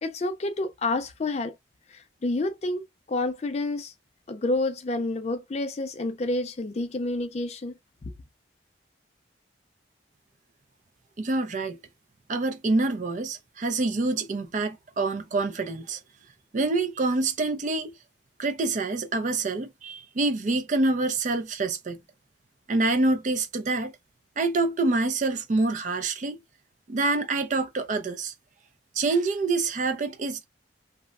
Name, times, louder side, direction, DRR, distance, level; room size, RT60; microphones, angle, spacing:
voice 1, 0.0-1.5 1.9-3.9 4.3-7.7, left 2 dB, 35° left, 0.4 m, -29 dB
voice 2, 11.2-11.8 12.3-16.0 16.5-17.9 18.4-22.0 22.7-23.9 24.4-26.4 26.9-28.3 29.0-30.5, right 3 dB, 40° right, 0.4 m, -26 dB
3.0 x 2.1 x 2.3 m
head